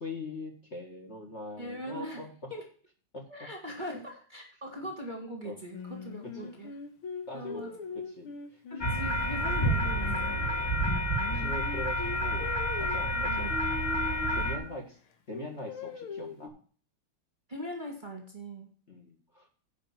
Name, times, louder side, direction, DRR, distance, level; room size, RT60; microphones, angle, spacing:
voice 1, 0.0-2.3 3.1-3.2 3.9-4.0 5.4-5.6 6.4-6.5 7.3-7.8 8.2-8.6 11.3-13.5 14.3-15.0 15.3-16.5 18.9-19.5, left 2 dB, 35° left, 2 dB, 1.9 m, -42 dB
voice 2, 1.6-2.2 2.5-2.7 3.3-6.7 7.3-7.7 8.7-10.3 13.3-13.5 17.5-18.7, equal, 25° right, 0 dB, 1.7 m, -41 dB
Singing, 5.7-10.4 10.8-14.8 15.3-16.5, left 4 dB, 80° left, 2.0 m, -41 dB
sound 1, 8.8-14.6, equal, 15° left, 0.9 m, -29 dB
10.0 x 5.3 x 5.9 m, 0.43 s
omnidirectional pair, 2.3 m